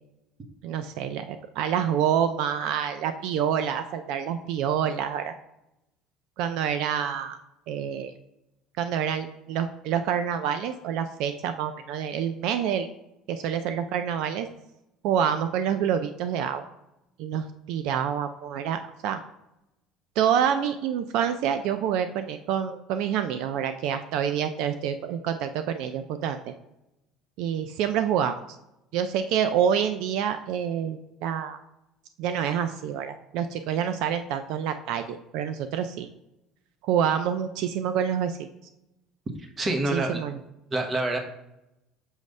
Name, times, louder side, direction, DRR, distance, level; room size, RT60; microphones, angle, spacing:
voice 1, 0.6-5.3 6.4-7.4 7.7-8.1 8.8-12.9 13.3-14.5 15.0-16.6 17.2-19.2 20.2-26.5 27.4-28.4 28.9-31.6 32.2-36.1 36.8-38.5 39.7-40.3, right 8 dB, 70° right, 9 dB, 0.4 m, -27 dB
voice 2, 39.4-40.2 40.7-41.2, right 2 dB, 25° right, 4 dB, 1.0 m, -27 dB
6.4 x 3.1 x 5.3 m, 0.90 s
cardioid pair, 150°, 0 cm